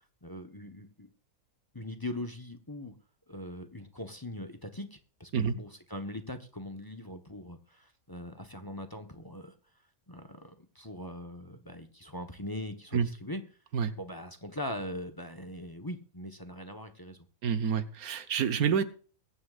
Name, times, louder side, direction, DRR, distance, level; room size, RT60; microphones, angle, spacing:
voice 1, 0.2-1.1 1.7-2.9 3.3-9.5 10.1-13.4 14.0-17.2, left 1 dB, 15° left, 8 dB, 1.1 m, -41 dB
voice 2, 17.4-18.8, right 7 dB, 85° right, 10 dB, 1.5 m, -28 dB
22.5 x 9.8 x 2.5 m, 0.40 s
omnidirectional pair, 1.5 m